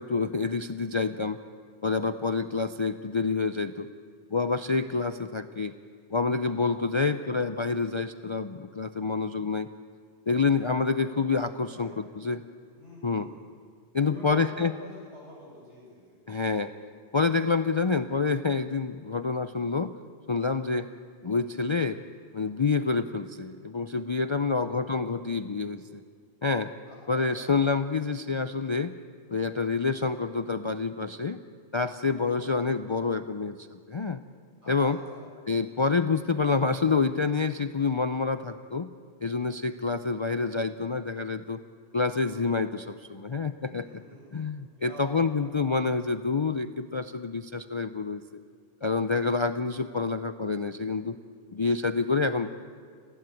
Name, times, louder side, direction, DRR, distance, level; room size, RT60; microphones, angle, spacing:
voice 1, 0.0-1.4 1.8-3.9 4.3-5.7 6.1-9.7 10.3-12.4 13.0-13.3 13.9-14.7 16.3-16.7 17.1-19.9 20.3-20.9 21.2-22.0 22.3-26.0 26.4-26.7 27.1-29.0 29.3-31.4 31.7-34.2 34.7-35.0 35.5-38.9 39.2-41.6 41.9-44.0 44.3-48.2 48.8-51.2 51.5-52.5, left 4 dB, 40° left, 10 dB, 0.4 m, -27 dB
voice 2, 6.7-7.1 11.7-12.1 12.7-13.4 14.0-16.2 24.4-24.9 26.9-27.8 32.3-32.7 34.6-35.3 43.7-44.5 44.8-45.6, left 1 dB, 90° right, -4 dB, 5.7 m, -48 dB
20.0 x 15.0 x 9.1 m, 2.1 s
omnidirectional pair, 1.1 m